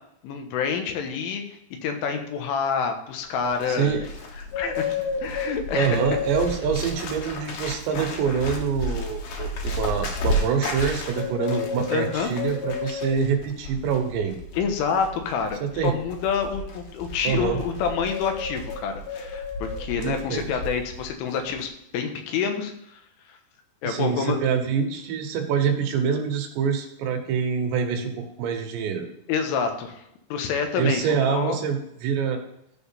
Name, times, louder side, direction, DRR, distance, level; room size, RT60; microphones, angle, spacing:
voice 1, 0.2-4.0 4.4-4.9 5.2-6.0 11.9-12.3 14.5-23.0 23.3-23.4 23.8-24.4 29.3-30.0 30.3-31.6, left 6 dB, 90° left, 5 dB, 3.8 m, -28 dB
Bird, 3.3-21.1 21.3-21.7, left 2 dB, 60° left, 3.0 m, -32 dB
voice 2, 3.7-4.1 5.7-14.4 15.6-15.9 17.2-17.6 20.0-20.4 23.8-29.1 30.8-32.4, right 6 dB, 75° right, 5 dB, 2.9 m, -25 dB
13.5 x 4.8 x 5.6 m, 0.77 s
omnidirectional pair, 5.5 m